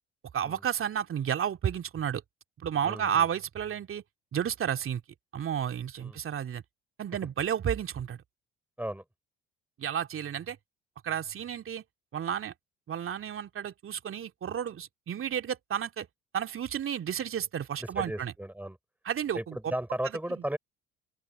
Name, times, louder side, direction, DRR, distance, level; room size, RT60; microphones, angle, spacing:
voice 1, 0.3-2.2 2.6-4.0 4.3-5.0 5.3-6.6 7.0-8.2 9.8-10.6 11.0-11.8 12.1-12.5 12.9-16.1 16.3-18.3 19.0-19.7 20.3-20.4, right 9 dB, 40° right, 2.7 m, -32 dB
voice 2, 2.8-3.3 6.0-6.2 8.8-9.0 17.8-18.8 19.3-20.6, right 1 dB, 5° right, 5.7 m, -35 dB
open air
figure-of-eight pair, 55°, 32 cm